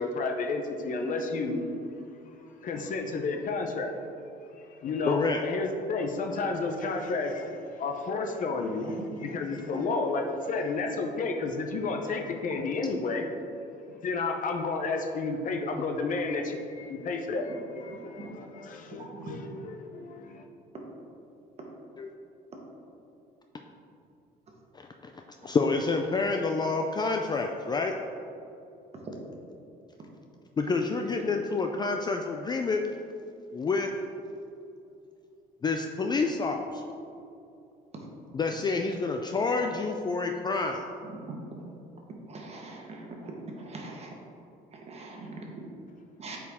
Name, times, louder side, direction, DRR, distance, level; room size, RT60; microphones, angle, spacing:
voice 1, 0.0-1.7 2.6-4.0 4.8-13.3 13.9-20.4, left 3 dB, 50° left, 4 dB, 0.7 m, -31 dB
voice 2, 5.1-5.4 22.0-22.1 24.7-24.9 25.1-27.9 30.6-32.8 33.5-33.9 35.6-36.8 38.3-40.8, left 4 dB, 25° left, 3 dB, 0.4 m, -28 dB
voice 3, 42.3-42.9 43.7-44.1 44.9-45.3 46.2-46.4, right 3 dB, 40° right, 0 dB, 1.4 m, -42 dB
8.4 x 4.6 x 3.6 m, 2.7 s
cardioid pair, 110°, 17 cm